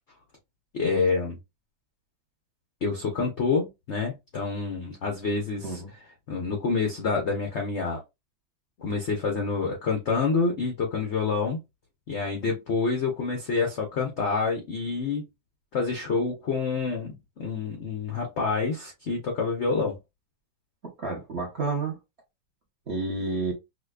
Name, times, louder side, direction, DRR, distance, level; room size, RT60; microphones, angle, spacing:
voice 1, 0.7-1.4 2.8-5.8 6.3-8.0 8.8-11.6 12.1-15.2 15.7-20.0, left 4 dB, 85° left, 0.6 m, -27 dB
voice 2, 21.0-22.0 22.9-23.5, right 3 dB, 55° right, 0.7 m, -30 dB
4.9 x 2.2 x 2.2 m
omnidirectional pair, 2.2 m